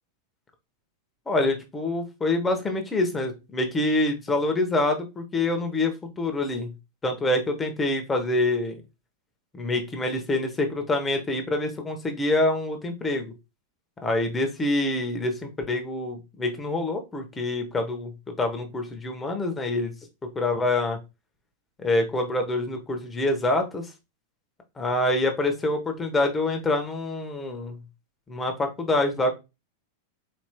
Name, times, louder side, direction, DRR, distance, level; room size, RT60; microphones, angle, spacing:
voice 1, 1.3-6.7 7.0-8.8 9.5-13.3 14.0-18.1 18.4-19.9 20.3-21.0 21.8-23.9 24.8-27.8 28.3-29.3, left 2 dB, 15° left, 5 dB, 1.0 m, -26 dB
4.4 x 3.0 x 2.2 m, 0.25 s
hypercardioid pair, 100°, 0 cm